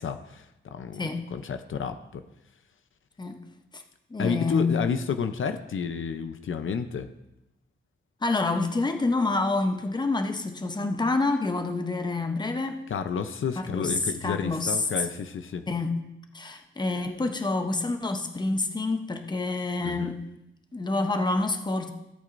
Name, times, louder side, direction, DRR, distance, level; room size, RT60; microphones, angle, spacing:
voice 1, 0.0-1.0 1.3-2.2 4.2-7.1 12.9-15.7 19.8-20.1, left 6 dB, 80° left, 9 dB, 0.6 m, -30 dB
voice 2, 1.0-1.3 3.2-3.4 3.7-3.8 4.1-4.8 8.2-12.8 13.6-13.9 14.2-14.7 15.7-15.9 16.3-20.2 20.7-21.9, left 3 dB, 20° left, 6 dB, 0.8 m, -27 dB
15.5 x 8.4 x 2.6 m, 0.90 s
wide cardioid pair, 125°, 20 cm